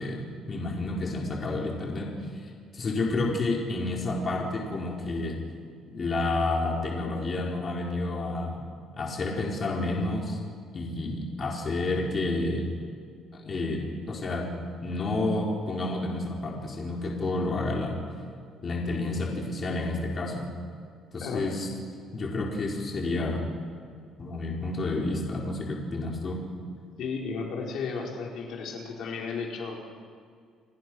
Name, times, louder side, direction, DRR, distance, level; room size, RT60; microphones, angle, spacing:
voice 1, 0.0-2.1 2.4-5.4 5.9-8.6 9.0-10.4 10.7-12.7 13.3-14.5 14.8-18.0 18.6-20.5 21.1-21.7 22.1-23.4 24.2-26.4, left 2 dB, 35° left, -1 dB, 4.4 m, -30 dB
voice 2, 21.2-21.5 27.0-29.9, left 5 dB, 65° left, 0 dB, 4.8 m, -34 dB
29.5 x 23.0 x 6.3 m, 2.1 s
cardioid pair, 130°, 0 cm